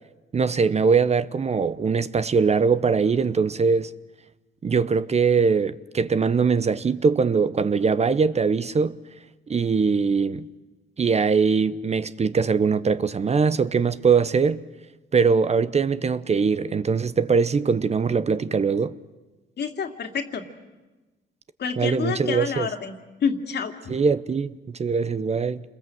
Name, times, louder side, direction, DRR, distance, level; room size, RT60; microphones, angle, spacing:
voice 1, 0.3-3.9 4.6-9.0 9.5-10.5 11.0-14.6 15.1-18.9 21.8-22.7 23.9-25.6, right 5 dB, 35° right, 0.8 m, -22 dB
voice 2, 19.6-20.4 21.6-22.9 23.2-23.9, left 6 dB, 55° left, 2.4 m, -28 dB
28.5 x 21.5 x 7.8 m
cardioid pair, 90°, 20 cm